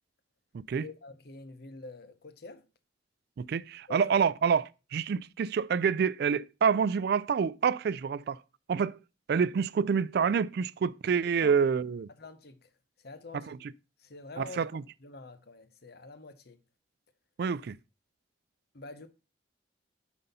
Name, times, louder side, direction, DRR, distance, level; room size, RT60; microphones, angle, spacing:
voice 1, 0.8-2.6 3.9-4.1 11.4-11.6 12.1-12.7 13.0-13.6 14.0-16.6 18.7-19.1, left 3 dB, 55° left, 0.9 m, -47 dB
voice 2, 3.4-8.4 8.7-9.0 9.3-12.1 13.5-13.6 14.4-14.8 17.4-17.8, right 6 dB, 60° right, 0.3 m, -27 dB
9.3 x 4.1 x 5.4 m
head